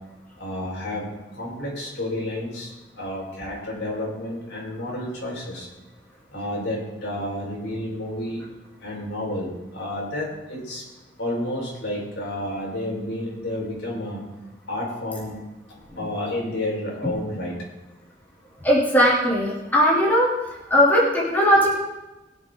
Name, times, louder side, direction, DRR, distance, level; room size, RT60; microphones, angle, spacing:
voice 1, 0.4-1.1 1.3-5.7 6.3-8.4 8.8-10.8 11.2-14.2 14.7-15.3 16.0-17.6, left 1 dB, 70° left, -3 dB, 4.7 m, -30 dB
voice 2, 18.6-20.3 20.7-21.7, equal, 10° left, -6 dB, 3.0 m, -18 dB
21.5 x 7.4 x 3.8 m, 1.1 s
head